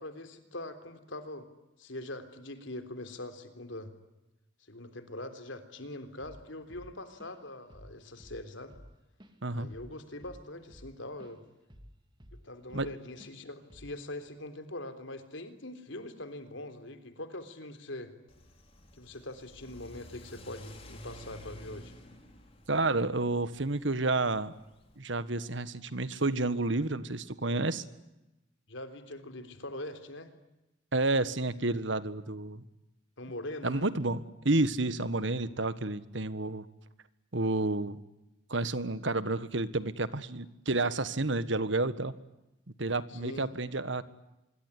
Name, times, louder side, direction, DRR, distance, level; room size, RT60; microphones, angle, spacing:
voice 1, 0.0-1.5 1.8-3.9 4.7-8.7 9.5-11.4 12.4-18.1 18.9-21.9 28.7-30.3 33.2-33.8 43.1-43.5, left 1 dB, 75° left, 9 dB, 3.7 m, -42 dB
Drum kit / Drum, 6.2-6.5 6.7-7.5 7.7-8.0 8.2-11.4 11.7-12.9 13.2-13.4 13.7-14.0, equal, 25° right, 2.9 m, -52 dB
Car / Accelerating revving vroom, 18.3-25.0, left 1 dB, 30° left, 4.5 m, -51 dB
voice 2, 22.7-24.5 25.0-27.8 30.9-32.6 33.6-36.6 37.3-38.0 38.5-42.1 42.8-44.0, right 2 dB, 70° right, 14 dB, 1.6 m, -30 dB
25.5 x 23.5 x 9.9 m, 0.94 s
head